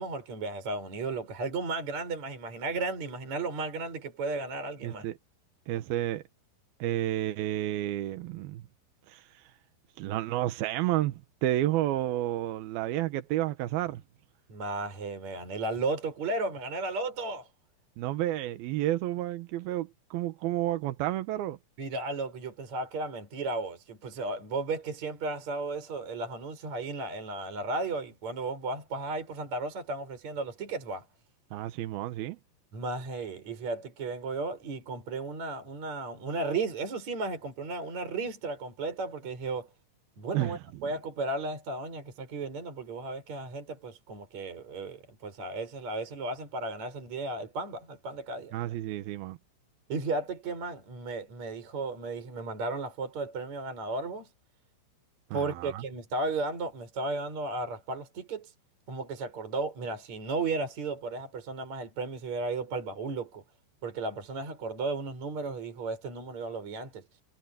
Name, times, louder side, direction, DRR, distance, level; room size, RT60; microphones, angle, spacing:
voice 1, 0.0-5.0 14.5-17.5 21.8-31.1 32.7-39.7 40.2-48.5 49.9-54.3 55.3-58.5 58.9-63.4 63.8-67.0, right 3 dB, 35° right, 6.8 m, -34 dB
voice 2, 4.8-5.1 5.7-6.2 6.8-8.6 9.1-9.4 10.0-14.0 18.0-21.6 31.5-32.4 40.3-40.6 48.5-49.4 55.3-55.8, right 14 dB, 80° right, 2.2 m, -31 dB
omnidirectional pair, 5.8 m